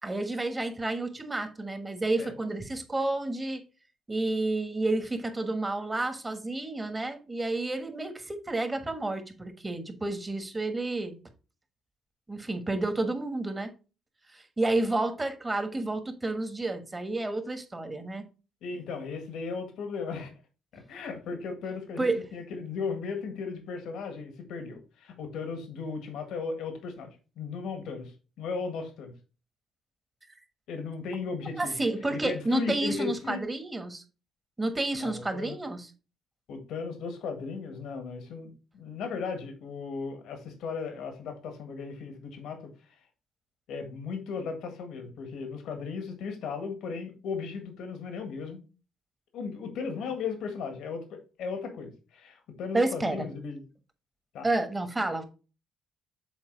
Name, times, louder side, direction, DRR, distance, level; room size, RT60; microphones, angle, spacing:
voice 1, 0.0-3.6 4.1-11.2 12.3-13.7 14.3-18.2 22.0-22.2 31.6-34.0 34.6-35.9 52.7-53.3 54.4-55.2, right 2 dB, 20° right, 1.3 m, -30 dB
voice 2, 18.6-20.3 20.7-29.1 30.7-31.8 32.1-33.4 34.9-35.6 36.5-42.7 43.7-48.6 49.3-53.6 54.3-54.5, left 5 dB, 85° left, 1.5 m, -36 dB
7.2 x 4.1 x 3.9 m
cardioid pair, 90°, 0 cm